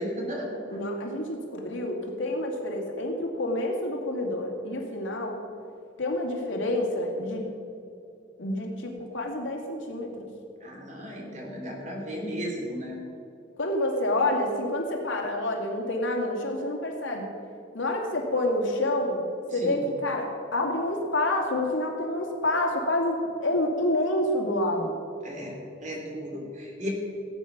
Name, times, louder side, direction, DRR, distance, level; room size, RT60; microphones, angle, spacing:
voice 1, 0.0-0.8 10.6-13.0 19.5-19.8 25.2-25.6 25.8-26.9, equal, 40° right, -1 dB, 3.1 m, -35 dB
voice 2, 0.7-5.4 6.0-7.4 8.4-10.3 13.6-17.3 17.7-19.2 19.5-23.2 23.4-25.0, left 1 dB, 85° left, 1 dB, 2.5 m, -28 dB
17.5 x 8.7 x 6.1 m, 2.6 s
head